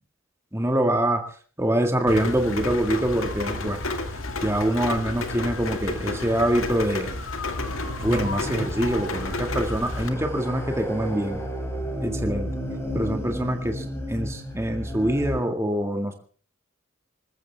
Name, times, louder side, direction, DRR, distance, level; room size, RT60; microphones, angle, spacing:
voice 1, 0.5-1.2 1.6-3.8 4.4-7.2 8.0-11.4 12.0-12.5 12.9-16.1, right 1 dB, 15° right, 5 dB, 1.9 m, -25 dB
Rain, 2.1-10.1, left 2 dB, 80° left, 1.9 m, -31 dB
sound 1, 7.6-15.4, equal, 10° left, 3.6 m, -33 dB
26.0 x 14.0 x 3.5 m, 0.41 s
head